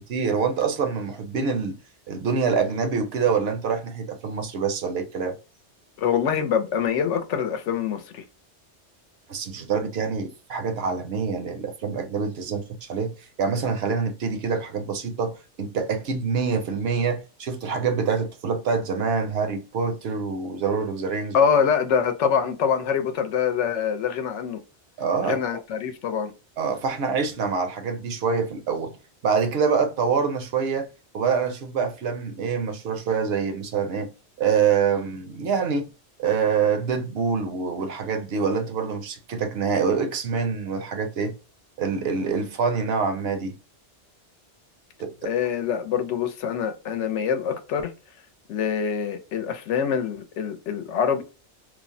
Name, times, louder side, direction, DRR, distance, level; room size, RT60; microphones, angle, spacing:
voice 1, 0.0-1.8 2.1-5.3 9.3-21.4 25.0-25.4 26.6-29.0 29.2-30.9 31.1-34.1 34.4-35.9 36.2-41.3 41.8-43.6 45.0-45.3, right 5 dB, 65° right, 0.8 m, -25 dB
voice 2, 6.0-8.2 21.3-24.6 25.2-26.3 45.2-47.9 48.5-51.2, left 7 dB, 85° left, 0.9 m, -25 dB
3.1 x 2.0 x 2.5 m
omnidirectional pair, 1.2 m